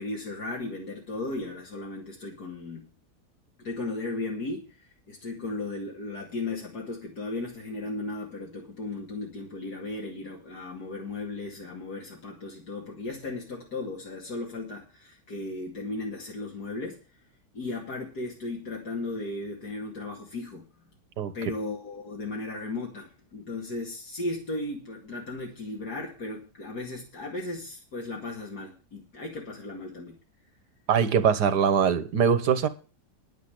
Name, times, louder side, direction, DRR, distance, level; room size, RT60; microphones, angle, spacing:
voice 1, 0.0-2.9 3.6-17.0 17.5-20.7 21.3-30.2, left 2 dB, 70° left, 2.8 m, -36 dB
voice 2, 30.9-32.7, right 7 dB, 90° right, 1.6 m, -22 dB
10.0 x 7.6 x 7.8 m
omnidirectional pair, 1.7 m